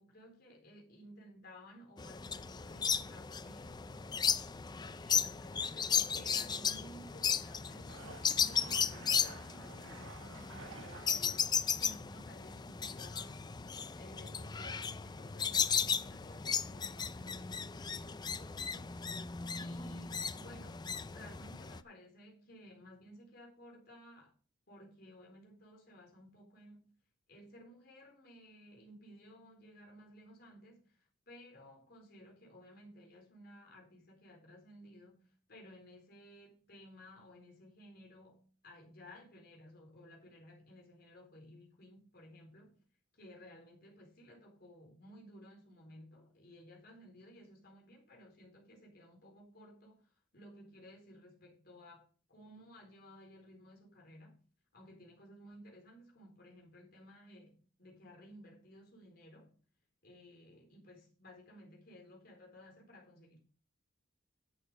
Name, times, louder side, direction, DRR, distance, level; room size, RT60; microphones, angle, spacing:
voice 1, 0.0-4.3 4.7-13.5 13.9-24.3 24.7-26.9 27.3-42.8 43.1-54.4 54.7-59.6 60.0-63.4, equal, 50° left, 4.1 m, -56 dB
sound 1, 2.0-21.8, left 6 dB, 20° left, 0.4 m, -36 dB
sound 2, 4.5-4.7 5.2-5.3 6.3-7.3 7.5-11.5, right 4 dB, 80° right, 1.8 m, -54 dB
11.0 x 7.2 x 5.2 m
head